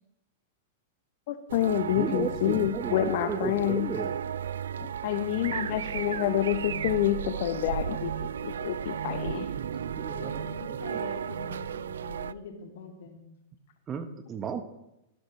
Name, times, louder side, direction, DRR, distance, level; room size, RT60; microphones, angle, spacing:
voice 1, 1.3-3.9 4.8-9.5, left 12 dB, 60° left, 9 dB, 0.8 m, -28 dB
sound 1, 1.5-12.3, right 8 dB, 85° right, 0.4 m, -34 dB
voice 2, 1.9-4.1 9.3-10.1 13.9-14.6, right 6 dB, 25° right, 8 dB, 1.1 m, -34 dB
voice 3, 10.0-13.2, left 4 dB, 75° left, 2 dB, 2.8 m, -43 dB
16.5 x 12.5 x 3.3 m, 0.88 s
hypercardioid pair, 120°, 0 cm